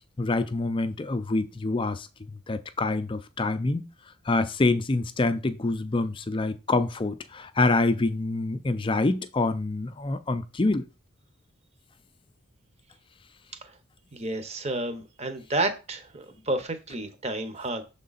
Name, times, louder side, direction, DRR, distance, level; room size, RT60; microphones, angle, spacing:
voice 1, 0.2-3.9 4.3-10.9, left 2 dB, 25° left, 0.4 m, -26 dB
voice 2, 14.1-17.8, right 2 dB, 30° right, 0.9 m, -31 dB
6.6 x 3.7 x 4.0 m
head